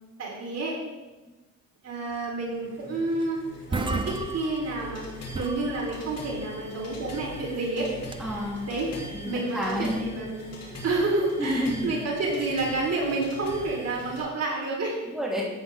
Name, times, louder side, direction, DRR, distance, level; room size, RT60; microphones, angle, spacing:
voice 1, 0.2-0.8 1.8-3.4 3.7-5.0 5.3-7.9 8.7-8.9 9.2-10.5 10.8-15.0, right 2 dB, 55° right, -3 dB, 4.1 m, -29 dB
sound 1, 2.4-14.2, left 1 dB, 55° left, 3.6 m, -42 dB
sound 2, 3.2-3.3 3.5-5.0 5.3-6.3 7.9-8.5, right 3 dB, 15° right, 0.7 m, -34 dB
voice 2, 8.2-8.6 9.1-10.1 11.4-11.9 15.1-15.5, equal, ahead, -5 dB, 3.8 m, -29 dB
14.5 x 9.0 x 3.8 m, 1.1 s
cardioid pair, 90°, 30 cm